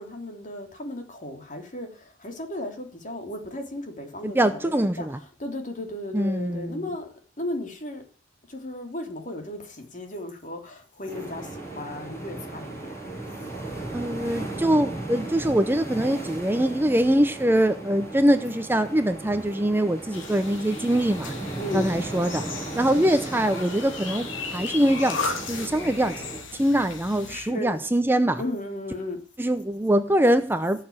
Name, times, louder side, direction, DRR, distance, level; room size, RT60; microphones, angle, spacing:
voice 1, 0.0-8.0 8.5-13.0 21.6-21.9 27.3-27.8 28.4-29.2, left 1 dB, 40° left, 3.3 m, -35 dB
voice 2, 4.2-5.2 6.1-6.8 13.9-21.3 21.7-22.4 22.8-26.2 26.5-28.4 29.4-30.8, right 1 dB, 10° right, 0.7 m, -23 dB
sound 1, 11.1-26.4, right 2 dB, 15° left, 7.3 m, -36 dB
sound 2, 20.1-27.4, left 4 dB, 85° left, 3.0 m, -36 dB
17.5 x 6.8 x 8.7 m
head